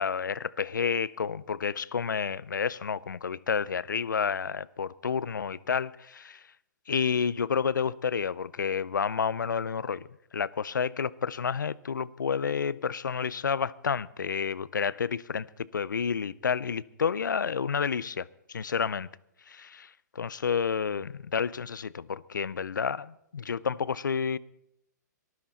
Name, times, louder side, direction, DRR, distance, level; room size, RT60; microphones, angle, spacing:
voice 1, 0.0-6.4 6.9-10.1 10.3-19.1 19.5-24.4, left 6 dB, 85° left, 0.5 m, -30 dB
18.5 x 13.0 x 4.2 m
hypercardioid pair, 125°, 10 cm